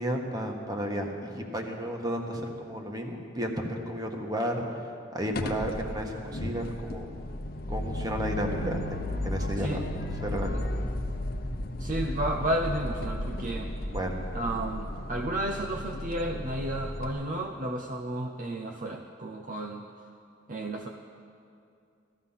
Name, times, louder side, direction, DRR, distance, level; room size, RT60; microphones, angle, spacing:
voice 1, 0.0-7.1 7.7-9.8 10.2-10.7 13.9-14.2, equal, 20° right, 2 dB, 1.5 m, -33 dB
sound 1, 5.3-17.1, left 1 dB, 50° left, 0.9 m, -34 dB
voice 2, 11.8-13.7 14.3-19.9 20.5-20.9, right 1 dB, 45° right, 2 dB, 0.7 m, -32 dB
16.5 x 13.5 x 5.7 m, 2.5 s
head